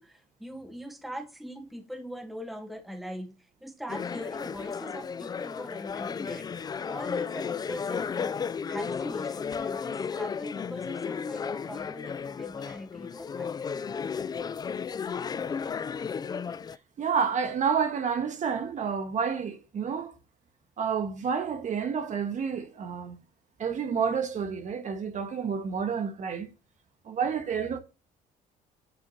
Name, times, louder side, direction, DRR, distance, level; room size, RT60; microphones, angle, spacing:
voice 1, 0.0-13.7, equal, ahead, 0.9 m, -42 dB
room sound party, 3.9-16.8, left 6 dB, 25° left, 0.3 m, -34 dB
voice 2, 17.0-20.1 20.8-23.2 23.6-26.5 27.0-27.8, right 6 dB, 45° right, 1.4 m, -29 dB
8.8 x 7.5 x 2.8 m
cardioid pair, 110°, 17 cm